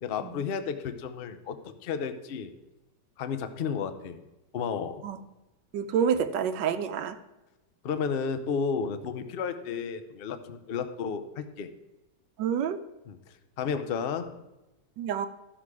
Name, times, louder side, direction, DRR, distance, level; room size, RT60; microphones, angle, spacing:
voice 1, 0.0-1.6 1.8-2.5 3.2-4.2 4.5-5.0 7.8-11.7 13.1-13.2 13.6-14.4, left 6 dB, 75° left, 9 dB, 0.5 m, -32 dB
voice 2, 5.7-7.2 12.4-12.8 15.0-15.3, right 7 dB, 85° right, 11 dB, 1.4 m, -28 dB
12.5 x 6.0 x 4.8 m, 1.0 s
omnidirectional pair, 1.9 m